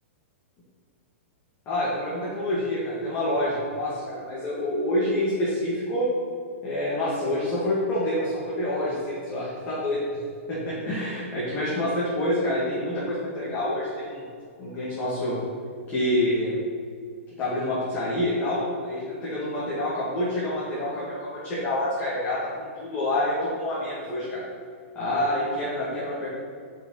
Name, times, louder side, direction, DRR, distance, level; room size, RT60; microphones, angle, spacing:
voice 1, 1.7-6.1 6.6-10.2 10.5-14.2 14.6-15.4 15.9-16.6 17.4-24.4 25.0-26.3, left 1 dB, 25° left, -8 dB, 2.3 m, -27 dB
6.7 x 5.8 x 6.5 m, 2.1 s
hypercardioid pair, 145°, 7 cm